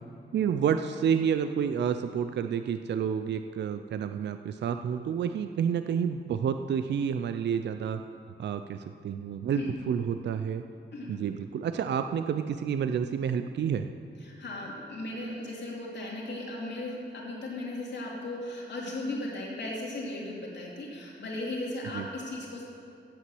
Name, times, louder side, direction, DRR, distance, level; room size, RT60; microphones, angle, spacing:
voice 1, 0.3-8.0 8.4-10.6 11.1-13.9 21.9-22.0, right 7 dB, 70° right, 8 dB, 0.4 m, -29 dB
voice 2, 14.2-22.6, left 2 dB, 70° left, -4 dB, 2.8 m, -36 dB
8.4 x 8.3 x 7.6 m, 2.4 s
wide cardioid pair, 125°, 19 cm